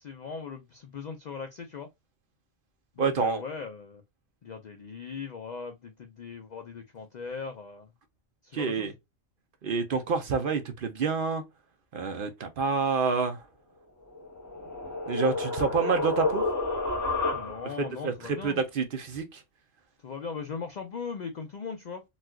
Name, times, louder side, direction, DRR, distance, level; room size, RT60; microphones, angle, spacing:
voice 1, 0.0-1.9 3.0-4.0 4.4-7.9 8.4-8.9 17.3-18.6 20.0-22.0, left 5 dB, 85° left, 0.4 m, -39 dB
voice 2, 3.0-3.4 8.5-8.9 9.6-11.4 11.9-13.4 15.1-16.4 17.8-19.4, right 5 dB, 55° right, 0.6 m, -28 dB
sound 1, 14.1-17.9, left 2 dB, 20° left, 0.6 m, -30 dB
4.1 x 2.3 x 2.2 m
omnidirectional pair, 1.3 m